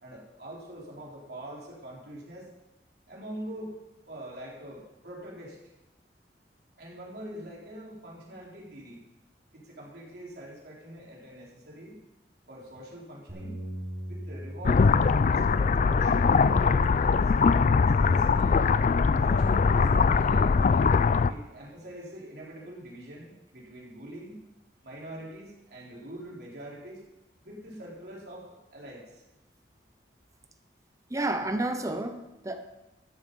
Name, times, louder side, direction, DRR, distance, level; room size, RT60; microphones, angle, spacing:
voice 1, 0.0-2.5 3.1-3.8 4.1-5.6 6.8-9.0 9.5-12.0 12.5-13.6 14.1-17.7 18.0-18.6 19.1-20.9 21.3-24.4 24.8-27.0 27.4-29.2, right 1 dB, 65° right, -4 dB, 3.8 m, -44 dB
Bass guitar, 13.3-17.7 18.4-19.5, right 1 dB, 35° right, 4.7 m, -43 dB
sound 1, 14.6-21.3, left 5 dB, 45° left, 0.4 m, -22 dB
voice 2, 31.1-32.6, right 2 dB, 20° right, 8 dB, 0.7 m, -30 dB
13.5 x 8.8 x 5.4 m, 0.97 s
head